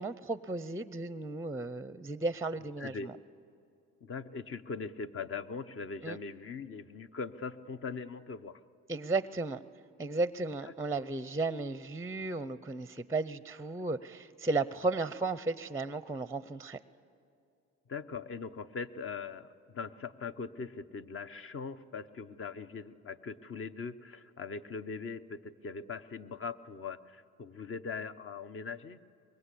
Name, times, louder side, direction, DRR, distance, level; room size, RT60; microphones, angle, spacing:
voice 1, 0.0-3.2 6.0-6.2 8.9-9.6 10.0-16.8, right 3 dB, 10° right, 15 dB, 0.6 m, -34 dB
voice 2, 2.8-3.1 4.0-8.6 10.9-11.0 17.9-29.0, left 5 dB, 45° left, 11 dB, 1.0 m, -41 dB
24.0 x 21.5 x 8.4 m, 2.6 s
cardioid pair, 90°, 30 cm